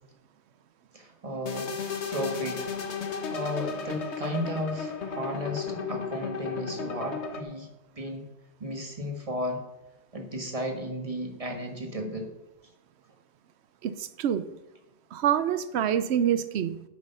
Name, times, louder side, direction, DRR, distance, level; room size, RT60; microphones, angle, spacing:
voice 1, 0.9-1.7 2.1-2.7 3.3-7.7 7.9-8.3 8.6-9.6 10.1-12.3, equal, 30° right, 3 dB, 1.5 m, -34 dB
sound 1, 1.5-7.4, left 5 dB, 90° left, 1.4 m, -34 dB
voice 2, 13.8-14.4 15.1-16.8, right 9 dB, 75° right, 13 dB, 0.9 m, -26 dB
8.6 x 7.9 x 5.5 m, 0.94 s
omnidirectional pair, 1.1 m